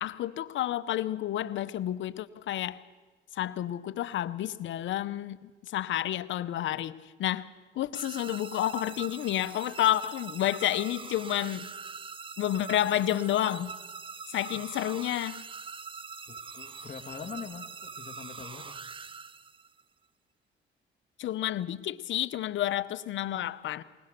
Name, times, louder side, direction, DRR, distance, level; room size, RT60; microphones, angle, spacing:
voice 1, 0.0-2.8 3.3-7.5 7.7-11.7 12.4-13.7 14.3-15.4 21.2-23.8, left 12 dB, 75° left, 14 dB, 0.8 m, -30 dB
sound 1, 7.9-19.8, right 5 dB, 25° right, 0.7 m, -43 dB
voice 2, 16.3-18.8, left 6 dB, 40° left, 4 dB, 2.0 m, -43 dB
20.5 x 19.5 x 6.7 m, 1.3 s
cardioid pair, 90°, 20 cm